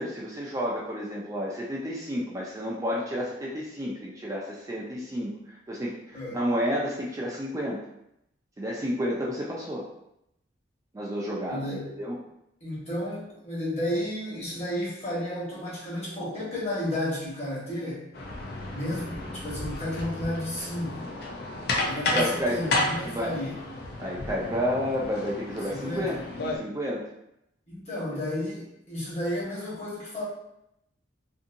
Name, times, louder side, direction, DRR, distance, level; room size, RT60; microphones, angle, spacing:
voice 1, 0.0-5.3 5.7-7.8 8.6-9.9 10.9-12.2 22.1-22.6 23.0-23.3 24.0-26.2 26.6-27.0, equal, 20° right, -4 dB, 0.3 m, -30 dB
voice 2, 11.5-11.9 12.6-18.1 18.7-21.1 21.8-23.6 25.7-26.1 27.7-30.2, left 1 dB, 35° left, -7 dB, 1.1 m, -32 dB
sound 1, 18.1-26.6, left 2 dB, 55° left, 0.5 m, -32 dB
2.6 x 2.6 x 2.5 m, 0.80 s
head